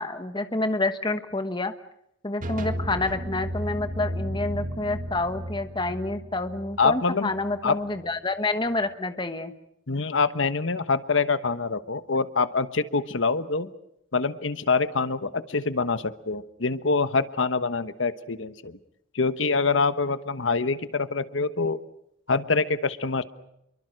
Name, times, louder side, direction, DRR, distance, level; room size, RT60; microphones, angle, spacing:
voice 1, 0.0-1.7 2.2-9.5, left 2 dB, 25° left, 9 dB, 1.3 m, -28 dB
sound 1, 2.4-8.1, equal, 45° right, 1.8 m, -34 dB
voice 2, 6.8-7.3 7.6-7.8 9.9-13.7 14.1-18.8 19.1-21.8 22.3-23.2, left 4 dB, 80° left, 13 dB, 1.2 m, -25 dB
28.5 x 23.5 x 6.5 m, 0.79 s
head